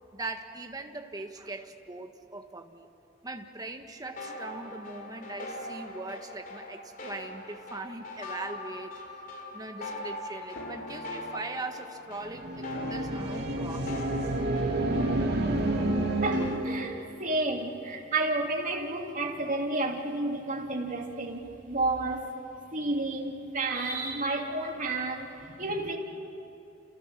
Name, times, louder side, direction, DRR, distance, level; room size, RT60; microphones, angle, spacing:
voice 1, 0.1-2.9 3.2-9.0 9.5-14.1 14.8-15.0, right 2 dB, 20° right, 5 dB, 1.6 m, -40 dB
sound 1, 4.2-15.4, left 1 dB, 50° left, 3.2 m, -41 dB
sound 2, 10.5-12.2 12.7-14.3 14.9-16.6, left 2 dB, 70° left, 2.0 m, -45 dB
sound 3, 12.2-16.9, right 2 dB, 60° right, 2.6 m, -29 dB
voice 2, 16.2-22.3 22.7-26.0, right 2 dB, 45° right, 0 dB, 2.9 m, -31 dB
29.5 x 29.0 x 6.7 m, 2.7 s
head